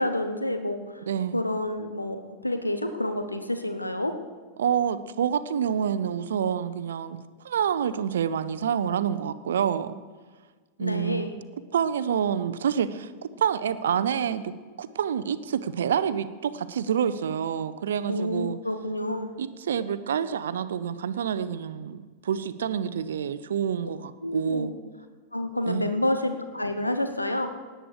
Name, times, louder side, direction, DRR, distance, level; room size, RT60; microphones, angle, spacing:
voice 1, 0.0-1.0 1.3-4.2 10.8-11.3 18.1-19.3 24.2-24.7 25.3-27.5, left 1 dB, 85° left, 8 dB, 0.9 m, -29 dB
voice 2, 1.1-1.4 4.6-7.2 7.4-9.9 10.8-11.3 11.7-13.1 13.4-14.5 14.8-18.6 19.4-24.7 25.7-25.9, right 8 dB, 65° right, 14 dB, 0.6 m, -27 dB
17.0 x 10.0 x 5.0 m, 1.4 s
figure-of-eight pair, 90°, 0 cm